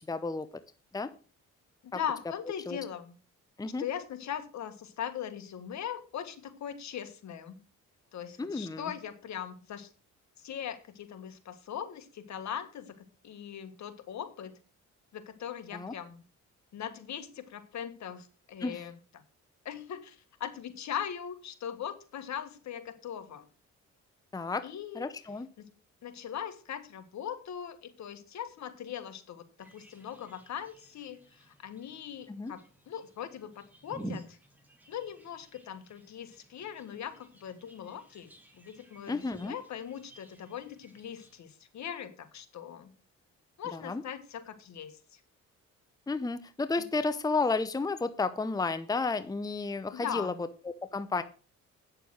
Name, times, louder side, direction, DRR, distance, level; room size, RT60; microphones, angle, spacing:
voice 1, 0.1-0.5 0.9-1.1 1.9-2.0 2.7-2.8 3.6-3.8 8.4-8.9 15.7-15.9 18.6-18.8 24.3-24.7 24.9-25.5 32.3-32.5 39.1-39.6 43.7-44.0 46.1-50.3 50.6-51.2, left 3 dB, 10° left, 12 dB, 0.7 m, -32 dB
voice 2, 1.8-3.2 3.8-7.6 8.1-9.9 10.4-14.6 15.1-16.2 16.7-19.0 19.7-23.5 24.6-25.1 25.6-25.7 26.0-34.4 34.9-42.9 43.6-45.2 49.9-50.4, left 9 dB, 65° left, 9 dB, 1.7 m, -40 dB
sound 1, 29.6-41.4, right 2 dB, 5° right, 2.4 m, -51 dB
9.0 x 6.7 x 6.3 m, 0.36 s
cardioid pair, 90°, 30 cm